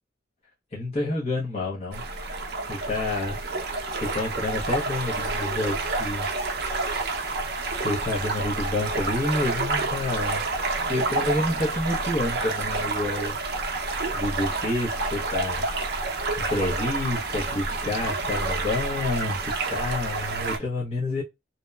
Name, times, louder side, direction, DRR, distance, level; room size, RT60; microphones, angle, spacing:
voice 1, 0.7-2.0 2.7-3.4 4.0-6.3 7.8-10.5 10.8-13.4 14.1-15.7 16.4-21.2, left 2 dB, 30° left, 0.7 m, -29 dB
sound 1, 1.9-20.6, right 3 dB, 55° right, 0.6 m, -29 dB
2.8 x 2.0 x 2.2 m
head